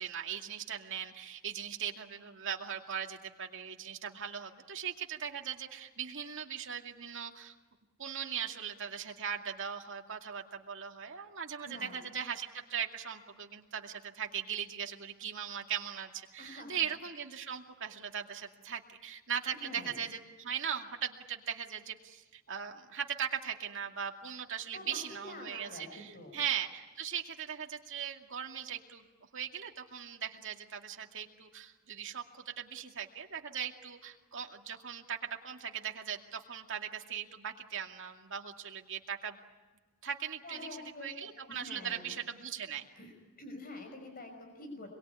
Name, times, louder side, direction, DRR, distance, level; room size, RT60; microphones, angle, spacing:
voice 1, 0.0-7.5 8.0-29.1 29.3-39.4 40.0-42.9, right 8 dB, 60° right, 2 dB, 2.3 m, -39 dB
voice 2, 11.6-12.0 16.4-16.9 19.5-20.0 24.7-26.4 40.4-41.2 41.5-42.2 43.0-43.1 43.4-44.9, left 2 dB, 45° left, 4 dB, 5.5 m, -47 dB
27.0 x 22.5 x 9.7 m, 1.2 s
head